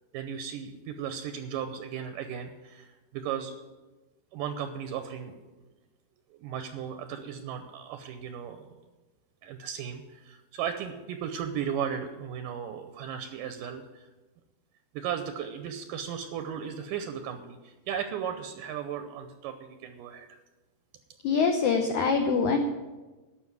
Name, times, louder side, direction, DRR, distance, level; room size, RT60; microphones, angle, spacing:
voice 1, 0.1-3.5 4.3-5.5 6.3-8.8 9.4-14.1 14.9-20.4, right 8 dB, 80° right, 8 dB, 1.9 m, -36 dB
voice 2, 21.2-22.6, left 5 dB, 80° left, 4 dB, 1.7 m, -24 dB
13.0 x 6.0 x 9.6 m, 1.2 s
omnidirectional pair, 4.7 m